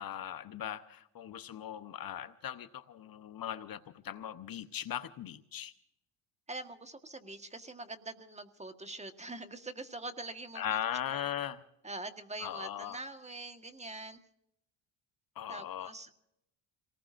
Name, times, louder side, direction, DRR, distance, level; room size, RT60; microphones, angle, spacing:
voice 1, 0.0-5.7 10.5-11.6 12.4-13.0 15.4-15.9, left 10 dB, 45° left, 12 dB, 0.9 m, -39 dB
voice 2, 6.5-10.6 11.1-11.3 11.8-14.2 15.5-16.1, right 2 dB, 15° right, 8 dB, 1.4 m, -44 dB
28.0 x 19.0 x 2.5 m, 0.80 s
cardioid pair, 90°, 47 cm